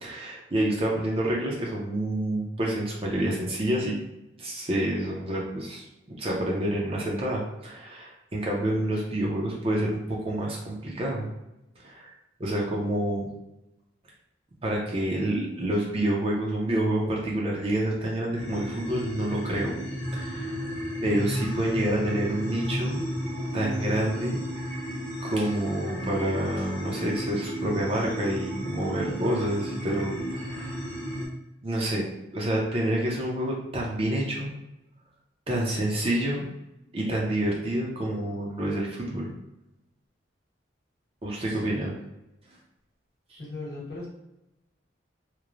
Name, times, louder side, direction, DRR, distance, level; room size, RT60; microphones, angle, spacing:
voice 1, 0.0-4.0 4.4-11.3 11.8-12.1 12.4-13.3 14.6-19.8 20.1-20.6 21.0-23.0 23.5-24.4 25.2-30.8 31.6-32.1 32.3-34.5 35.5-36.4 36.9-39.3 41.2-41.9 43.3-43.4, right 1 dB, 30° right, -2 dB, 0.5 m, -28 dB
sound 1, 18.4-31.3, equal, 20° left, 0.7 m, -33 dB
voice 2, 41.5-41.9 43.4-44.1, left 2 dB, 55° left, -4 dB, 1.0 m, -39 dB
3.0 x 2.0 x 2.4 m, 0.92 s
head